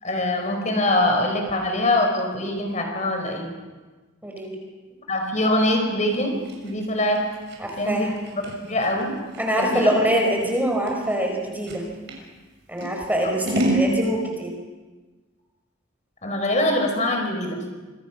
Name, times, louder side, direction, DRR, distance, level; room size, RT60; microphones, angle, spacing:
voice 1, 0.0-3.5 5.1-6.3 6.6-7.2 7.8-8.1 8.3-9.1 9.6-9.9 13.2-13.7 16.2-17.6, left 1 dB, 35° left, 3 dB, 4.9 m, -23 dB
voice 2, 4.2-4.6 7.6-8.1 9.4-11.8 12.7-14.5, equal, 10° right, 1 dB, 4.5 m, -24 dB
Scissors, 6.1-12.2 12.8-13.9, right 1 dB, 55° right, 6.3 m, -29 dB
27.0 x 24.5 x 6.2 m, 1.3 s
head